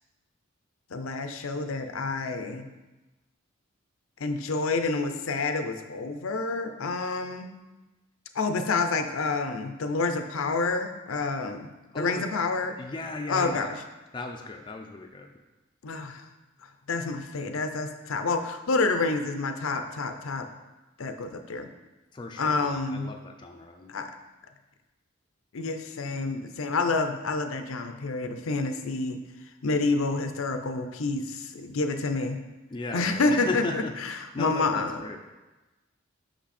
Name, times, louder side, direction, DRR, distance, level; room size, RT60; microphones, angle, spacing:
voice 1, 0.9-2.7 4.2-7.5 8.3-12.8 13.3-13.8 15.8-16.2 16.9-20.5 21.0-21.7 22.4-23.1 23.9-24.1 25.5-29.2 29.6-32.4 32.9-35.2, left 3 dB, 80° left, 7 dB, 0.6 m, -28 dB
voice 2, 11.9-12.2 12.8-13.7 14.1-15.3 22.1-23.9 32.7-33.9 34.3-35.2, left 2 dB, 25° left, 3 dB, 0.4 m, -36 dB
6.0 x 5.4 x 4.2 m, 1.1 s
head